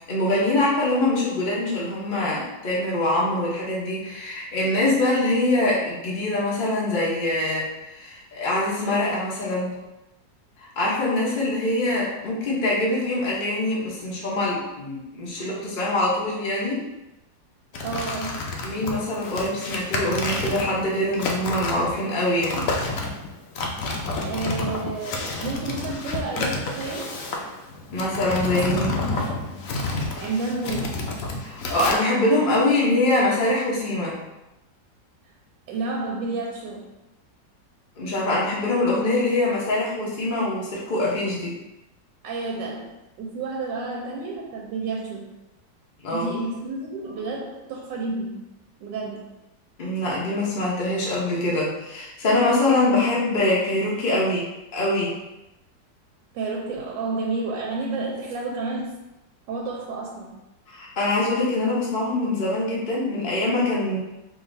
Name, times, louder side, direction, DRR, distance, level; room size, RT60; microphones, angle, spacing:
voice 1, 0.1-9.8 10.6-16.8 18.6-22.7 27.9-28.9 31.4-34.2 38.0-41.6 46.0-46.3 49.8-54.5 54.7-55.1 60.7-64.0, left 2 dB, 40° left, -5 dB, 0.8 m, -24 dB
sound 1, 17.7-31.9, left 2 dB, 70° left, 0.8 m, -30 dB
voice 2, 17.8-18.5 24.2-27.2 28.8-29.3 30.2-31.0 35.7-36.9 42.2-45.3 46.1-48.4 48.8-49.3 56.3-59.0 59.5-60.4, right 3 dB, 80° right, -2 dB, 1.3 m, -30 dB
4.9 x 2.7 x 2.6 m, 0.96 s
omnidirectional pair, 2.0 m